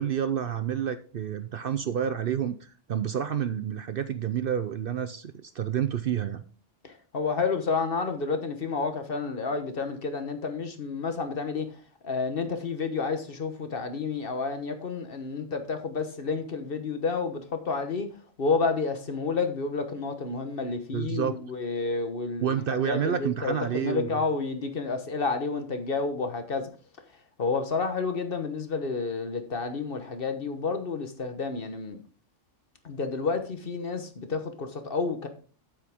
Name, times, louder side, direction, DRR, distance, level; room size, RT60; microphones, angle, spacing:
voice 1, 0.0-6.4 20.9-21.3 22.4-24.2, right 8 dB, 60° right, 0.7 m, -29 dB
voice 2, 6.8-18.1 18.4-22.6 22.8-26.7 27.4-32.0 32.8-35.3, left 4 dB, 50° left, 1.3 m, -30 dB
8.7 x 8.4 x 3.6 m
omnidirectional pair, 1.2 m